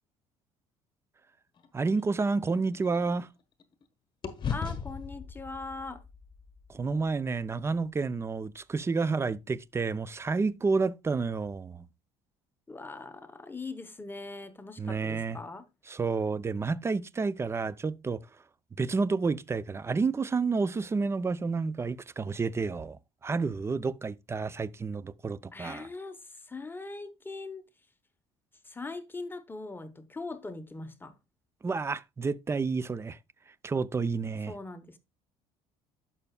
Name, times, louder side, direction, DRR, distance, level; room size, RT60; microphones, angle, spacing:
sound 1, 1.5-3.8 4.2-8.5, left 6 dB, 35° left, 1.2 m, -40 dB
voice 1, 1.7-3.3 6.7-11.9 14.8-15.4 15.9-18.2 18.8-25.9 31.6-33.2 33.6-34.5, right 4 dB, 20° right, 0.4 m, -30 dB
voice 2, 4.5-6.0 12.7-15.7 25.5-27.7 28.6-31.1 34.5-35.0, left 3 dB, 15° left, 0.9 m, -41 dB
11.5 x 5.7 x 2.3 m
supercardioid pair, 80°, 13 cm